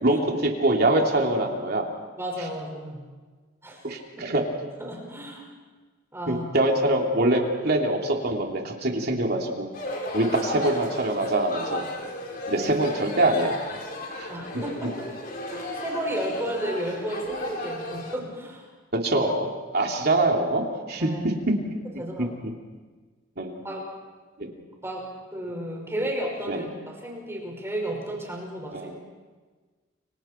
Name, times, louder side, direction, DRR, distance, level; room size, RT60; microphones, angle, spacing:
voice 1, 0.0-1.9 3.8-4.4 6.3-9.7 10.1-11.8 12.5-13.6 14.2-14.3 18.9-21.1 23.4-23.6 24.4-24.5 26.5-26.7 28.7-29.0, right 1 dB, 55° right, 1 dB, 3.0 m, -24 dB
voice 2, 2.2-3.0 3.6-3.9 4.2-4.4 4.8-5.5 6.1-6.4 14.3-15.0 15.5-18.7 21.0-21.2 22.0-22.3 23.6-23.9 24.8-28.9, right 1 dB, 15° right, -1 dB, 5.5 m, -33 dB
sound 1, 9.7-18.2, left 1 dB, 50° left, 4.5 m, -35 dB
30.0 x 24.5 x 4.5 m, 1.4 s
head